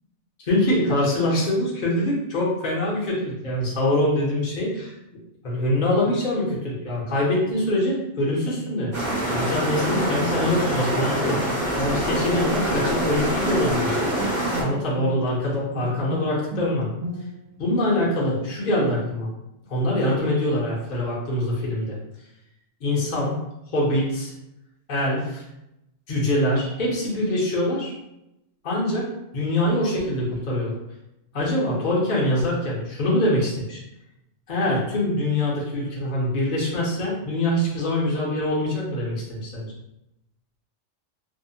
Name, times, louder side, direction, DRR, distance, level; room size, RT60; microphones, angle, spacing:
voice 1, 0.4-4.9 5.4-8.9 9.3-11.4 11.8-14.0 14.6-16.9 17.6-19.3 19.7-22.0 22.8-23.3 23.7-24.3 24.9-25.5 26.1-27.9 28.6-29.1 29.3-30.8 31.3-33.8 34.5-39.7, left 1 dB, 50° left, -5 dB, 0.7 m, -24 dB
sound 1, 8.9-14.6, right 1 dB, 25° right, 0.7 m, -25 dB
Bowed string instrument, 13.4-17.6, right 2 dB, 85° right, 1.1 m, -34 dB
2.7 x 2.2 x 2.7 m, 0.89 s
omnidirectional pair, 1.3 m